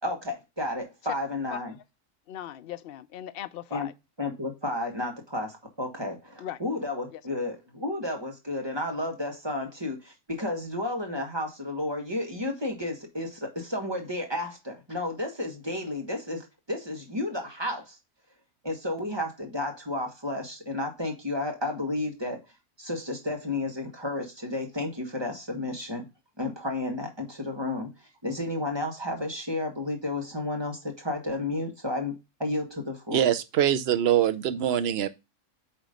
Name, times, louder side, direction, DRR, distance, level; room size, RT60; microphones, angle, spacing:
voice 1, 0.0-1.7 3.7-3.9 4.2-18.0 18.6-22.4 22.8-26.1 26.4-32.1 32.4-33.3, left 2 dB, 20° right, 1.4 m, -32 dB
voice 2, 2.3-3.9 6.4-6.6 7.1-7.2, left 10 dB, 65° left, 0.6 m, -38 dB
voice 3, 33.1-35.1, right 10 dB, 55° right, 0.8 m, -23 dB
8.9 x 3.0 x 5.1 m
omnidirectional pair, 1.5 m